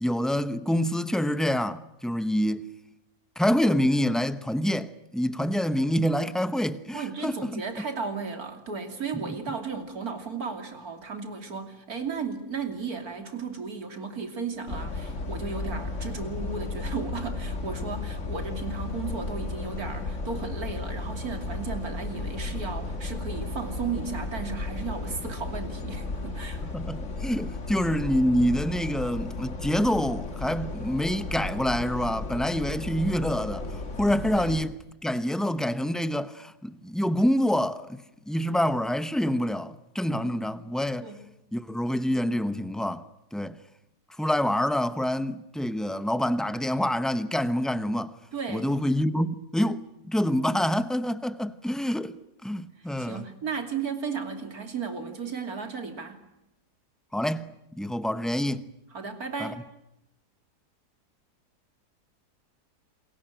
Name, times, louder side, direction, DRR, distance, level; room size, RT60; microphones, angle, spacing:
voice 1, 0.0-2.7 3.4-7.6 9.1-9.4 26.7-34.8 35.0-41.1 41.5-43.0 43.3-43.6 44.2-48.1 48.5-52.1 52.4-53.3 57.1-58.6 59.4-59.5, equal, ahead, 0.4 m, -27 dB
voice 2, 6.9-26.6 34.3-34.5 40.2-40.4 41.0-41.2 48.3-48.7 52.8-56.2 58.9-59.6, right 5 dB, 60° right, 3.4 m, -35 dB
sound 1, 14.7-34.6, left 3 dB, 45° left, 2.3 m, -34 dB
28.5 x 22.0 x 9.1 m
omnidirectional pair, 1.8 m